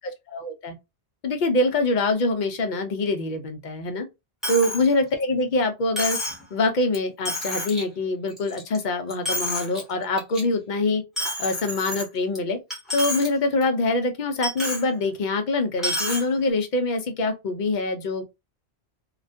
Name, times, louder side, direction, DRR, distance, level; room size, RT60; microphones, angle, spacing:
voice 1, 0.3-0.8 1.2-4.1 4.5-6.2 6.5-11.0 11.4-12.6 12.9-18.2, left 2 dB, 55° left, 0.6 m, -24 dB
Coin (dropping), 4.4-4.8 5.2-5.3 6.0-6.4 6.9-7.0 7.3-7.8 8.3-8.8 9.1-9.8 10.2-10.4 11.2-12.4 12.7-13.3 13.6-13.7 14.4-14.8 15.8-16.2, left 1 dB, ahead, 0.8 m, -29 dB
2.4 x 2.1 x 2.5 m
omnidirectional pair, 1.1 m